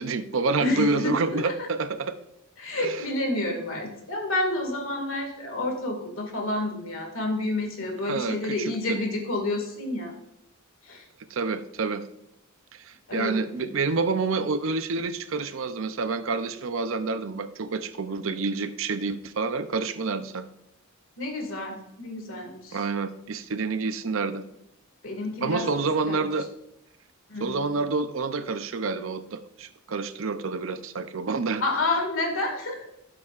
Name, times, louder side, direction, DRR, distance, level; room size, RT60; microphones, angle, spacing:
voice 1, 0.0-2.2 2.8-3.0 8.1-9.0 11.3-12.0 12.7-20.5 22.7-24.4 25.4-26.5 27.4-31.6, right 4 dB, 65° right, 11 dB, 0.5 m, -28 dB
voice 2, 0.6-1.7 2.6-10.1 10.8-11.1 13.1-13.7 21.2-22.8 25.0-25.7 26.1-26.3 27.3-27.7 31.6-32.8, left 2 dB, 70° left, 3 dB, 2.0 m, -29 dB
13.0 x 7.4 x 2.5 m, 0.82 s
head